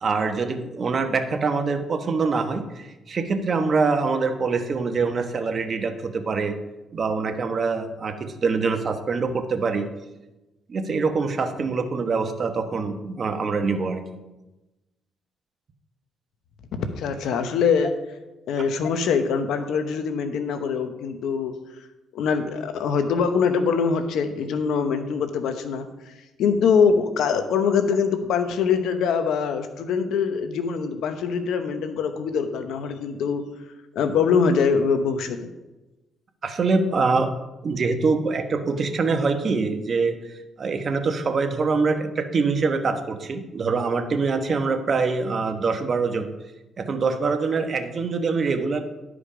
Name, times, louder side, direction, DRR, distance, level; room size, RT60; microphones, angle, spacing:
voice 1, 0.0-6.5 6.9-9.9 10.7-14.0 18.6-18.7 36.4-37.3 37.6-46.3 46.8-48.8, right 4 dB, 45° right, 6 dB, 1.1 m, -24 dB
voice 2, 16.7-17.9 18.5-21.5 22.1-25.9 26.4-33.4 33.9-35.4, left 6 dB, 80° left, 8 dB, 1.0 m, -23 dB
12.0 x 5.1 x 5.0 m, 1.0 s
cardioid pair, 90°, 0 cm